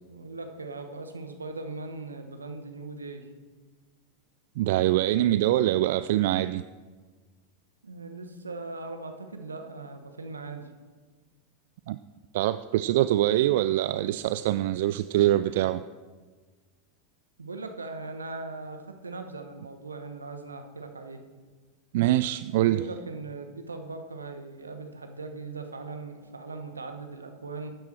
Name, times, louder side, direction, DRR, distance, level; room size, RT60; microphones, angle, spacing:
voice 1, 0.1-3.3 7.8-10.7 17.4-21.2 22.6-27.7, right 3 dB, 85° right, 6 dB, 1.2 m, -39 dB
voice 2, 4.6-6.6 11.9-12.0 12.3-15.8 21.9-22.8, right 14 dB, 60° right, 14 dB, 0.3 m, -24 dB
12.5 x 9.4 x 4.4 m, 1.4 s
figure-of-eight pair, 90°, 0 cm